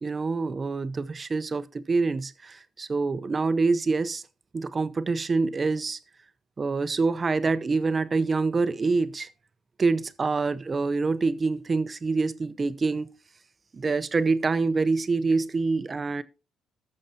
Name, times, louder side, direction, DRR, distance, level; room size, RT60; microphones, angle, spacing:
voice 1, 0.0-4.2 4.5-6.0 6.6-9.3 9.8-13.1 13.7-16.2, right 4 dB, 35° right, 0.6 m, -26 dB
14.5 x 6.4 x 2.8 m
cardioid pair, 90°, 0 cm